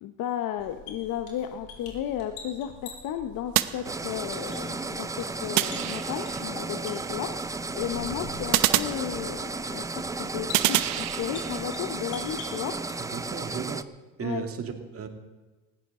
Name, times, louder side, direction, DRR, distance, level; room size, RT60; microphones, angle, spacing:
voice 1, 0.0-12.8 14.2-14.5, left 10 dB, 60° left, 8 dB, 1.0 m, -34 dB
sound 1, 0.6-13.4, left 5 dB, 85° left, 4.1 m, -46 dB
sound 2, 3.5-4.5 5.6-6.4 8.5-9.6 10.5-11.6, right 17 dB, 70° right, 0.8 m, -27 dB
sound 3, 3.8-13.8, right 3 dB, 10° right, 0.5 m, -34 dB
voice 2, 13.0-13.9 14.2-15.1, right 6 dB, 40° right, 4 dB, 2.3 m, -35 dB
19.5 x 15.5 x 3.8 m, 1.2 s
supercardioid pair, 100°, 36 cm